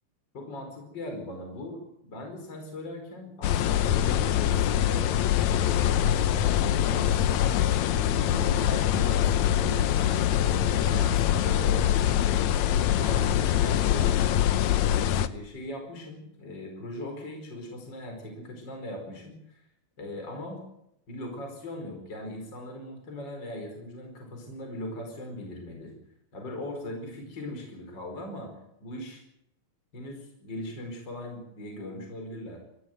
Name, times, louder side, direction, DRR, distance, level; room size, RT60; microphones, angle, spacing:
voice 1, 0.3-5.1 5.6-7.4 7.9-12.1 12.8-14.5 15.2-19.6 20.0-20.6 21.1-25.9 26.3-28.5 28.8-29.2 29.9-32.6, left 1 dB, 30° left, 3 dB, 5.2 m, -39 dB
sound 1, 3.4-15.3, left 11 dB, 70° left, 1.8 m, -24 dB
20.5 x 15.5 x 9.3 m, 0.80 s
omnidirectional pair, 4.1 m